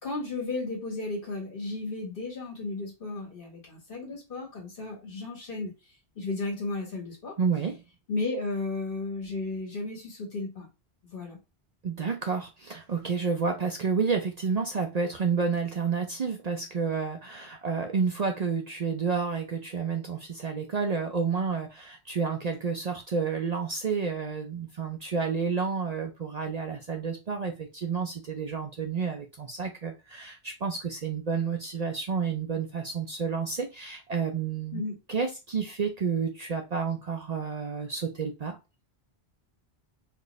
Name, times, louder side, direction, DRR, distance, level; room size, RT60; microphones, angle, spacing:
voice 1, 0.0-5.7 6.1-7.4 8.1-10.7 11.1-11.4 34.7-35.0, left 3 dB, 60° left, 1.6 m, -34 dB
voice 2, 7.4-7.8 11.8-34.8 35.1-38.6, right 5 dB, 50° right, 0.6 m, -30 dB
4.3 x 2.5 x 3.1 m
omnidirectional pair, 1.1 m